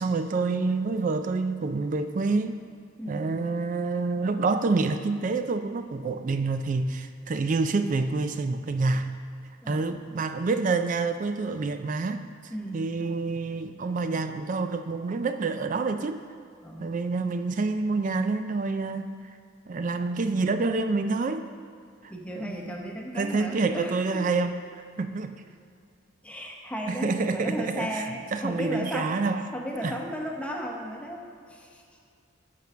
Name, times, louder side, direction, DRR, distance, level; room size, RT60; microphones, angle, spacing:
voice 1, 0.0-2.5 3.1-9.2 9.7-16.2 16.8-19.1 19.7-21.5 22.0-22.7 23.1-25.3 26.9-28.1 28.3-29.4 29.8-29.9, right 3 dB, 40° right, 9 dB, 0.3 m, -27 dB
voice 2, 3.0-3.4 9.6-10.0 12.5-12.9 16.6-17.0 22.1-24.3 26.2-29.1 29.5-31.8, equal, 5° left, 0 dB, 0.9 m, -35 dB
10.5 x 4.5 x 6.1 m, 2.3 s
head